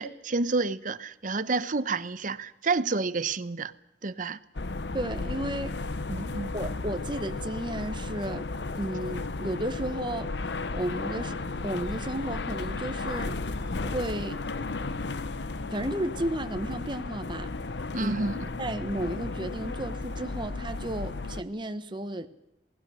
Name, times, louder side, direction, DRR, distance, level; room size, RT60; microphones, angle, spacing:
voice 1, 0.0-3.7 4.0-4.4 6.1-6.5 17.9-18.5, right 3 dB, 50° right, 0.9 m, -29 dB
sound 1, 4.5-21.4, left 3 dB, 75° left, 0.9 m, -34 dB
voice 2, 4.9-5.7 6.5-8.5 8.8-10.3 10.7-13.4 13.8-14.4 15.6-17.5 18.0-18.1 18.6-22.3, right 1 dB, 25° right, 1.2 m, -33 dB
27.5 x 19.0 x 6.3 m
head